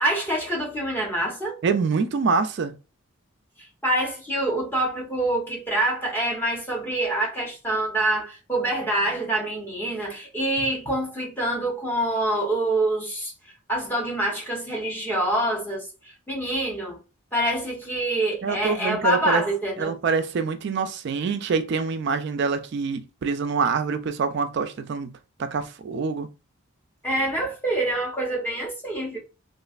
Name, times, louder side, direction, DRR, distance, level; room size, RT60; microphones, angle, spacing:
voice 1, 0.0-1.6 3.8-13.3 13.7-17.0 17.3-19.9 27.0-29.2, right 1 dB, 10° left, 0.8 m, -26 dB
voice 2, 1.6-2.7 18.4-19.4 19.8-25.1 25.4-26.3, right 5 dB, 50° right, 0.3 m, -25 dB
3.1 x 2.4 x 2.3 m
head